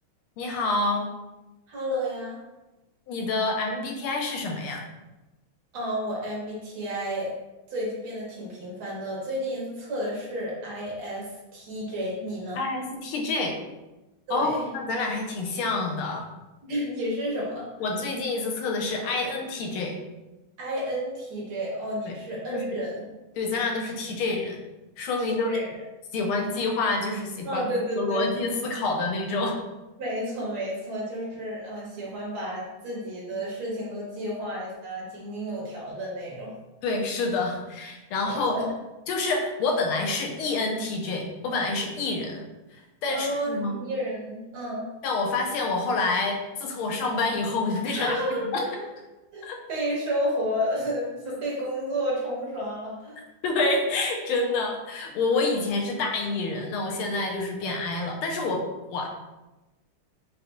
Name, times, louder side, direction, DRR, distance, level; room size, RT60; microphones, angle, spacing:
voice 1, 0.4-1.1 3.1-4.8 12.5-13.6 14.3-16.2 17.8-20.0 22.1-22.2 22.5-22.8 23.4-24.6 25.0-25.5 26.1-27.6 27.9-29.6 36.8-38.6 39.1-42.4 43.0-43.7 45.0-48.2 48.5-48.6 49.4-49.6 53.4-58.6 58.9-59.1, left 3 dB, 85° left, 1 dB, 1.6 m, -27 dB
voice 2, 1.7-2.4 5.7-7.3 7.7-12.6 14.3-14.6 16.6-17.7 20.6-23.0 25.3-25.7 27.5-28.3 30.0-36.5 38.2-38.7 43.1-44.9 48.0-48.9 49.3-49.4 49.7-53.2, equal, 75° right, -4 dB, 2.1 m, -31 dB
5.1 x 3.4 x 2.3 m, 1.1 s
omnidirectional pair, 2.3 m